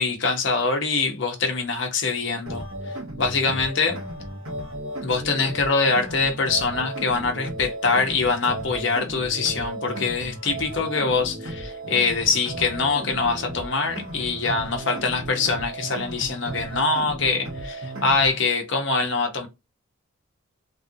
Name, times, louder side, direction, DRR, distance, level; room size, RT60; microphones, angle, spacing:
voice 1, 0.0-2.6 3.2-4.0 5.0-19.5, left 4 dB, 60° left, 0.9 m, -24 dB
sound 1, 2.5-18.5, right 1 dB, 75° right, 1.2 m, -35 dB
3.2 x 2.4 x 2.7 m
head